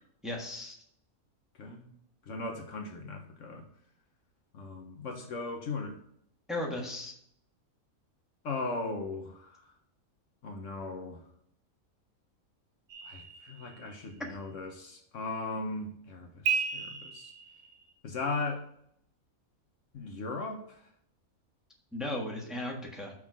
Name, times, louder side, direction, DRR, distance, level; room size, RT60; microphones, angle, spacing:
voice 1, 0.2-0.8 6.5-7.1 21.9-23.1, left 1 dB, ahead, -1 dB, 1.2 m, -36 dB
voice 2, 2.3-3.7 4.5-6.0 8.4-9.7 10.4-11.2 13.0-17.3 18.0-18.7 19.9-20.9, left 3 dB, 65° left, 3 dB, 1.2 m, -38 dB
sound 1, 12.9-14.1 16.4-17.9, right 6 dB, 85° right, 1.2 m, -34 dB
6.3 x 3.7 x 6.0 m, 0.68 s
omnidirectional pair, 1.5 m